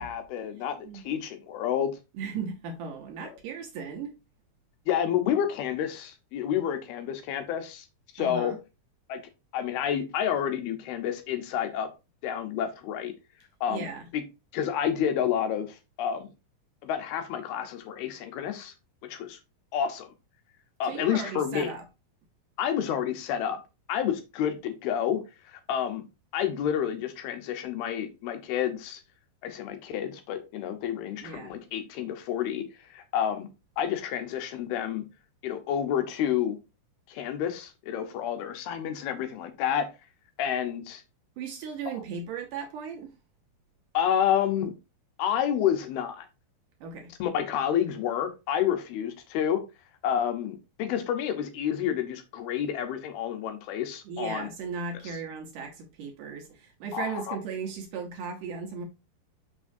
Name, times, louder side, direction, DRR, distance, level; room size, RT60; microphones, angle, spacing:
voice 1, 0.0-1.9 3.2-3.3 4.9-7.9 8.1-8.5 9.1-9.2 9.5-11.9 12.2-13.1 13.6-13.9 14.1-14.2 14.5-16.3 16.8-18.7 19.0-19.4 19.7-20.1 20.8-21.7 22.6-23.6 23.9-26.0 26.3-29.0 29.4-33.5 33.8-35.1 35.4-36.6 37.1-39.9 40.4-41.0 41.9-42.0 43.9-44.7 45.2-46.3 47.2-49.6 50.0-54.5 56.9-57.4, left 9 dB, 80° left, 2.8 m, -29 dB
voice 2, 0.6-1.0 2.1-4.1 8.2-8.6 13.7-14.1 20.8-21.9 31.2-31.6 41.4-43.1 46.8-47.1 54.0-58.9, right 5 dB, 70° right, 2.2 m, -37 dB
6.3 x 6.0 x 2.6 m
omnidirectional pair, 4.5 m